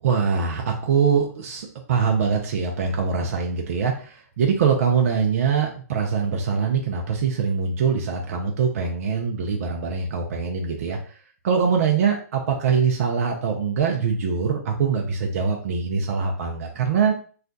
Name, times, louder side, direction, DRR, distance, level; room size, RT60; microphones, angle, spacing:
voice 1, 0.0-11.0 11.4-17.1, right 6 dB, 55° right, 1 dB, 0.5 m, -23 dB
2.4 x 2.2 x 3.8 m, 0.43 s
hypercardioid pair, 155°, 9 cm